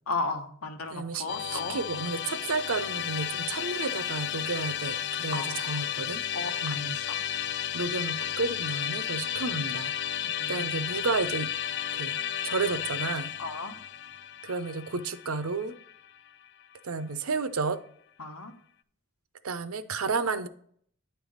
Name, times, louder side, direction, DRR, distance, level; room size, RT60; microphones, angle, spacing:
voice 1, 0.1-1.8 5.3-5.8 6.3-7.2 10.2-10.7 13.4-13.7 18.2-18.5, left 3 dB, 85° left, 6 dB, 1.0 m, -35 dB
voice 2, 0.9-6.2 6.6-7.0 7.7-10.2 10.5-11.5 11.9-12.2 12.4-13.3 14.4-15.7 16.8-17.8 19.4-20.5, right 4 dB, 80° right, 13 dB, 0.6 m, -32 dB
Musical instrument, 1.3-16.5, left 10 dB, 55° left, 0.3 m, -33 dB
9.5 x 3.4 x 6.3 m, 0.62 s
head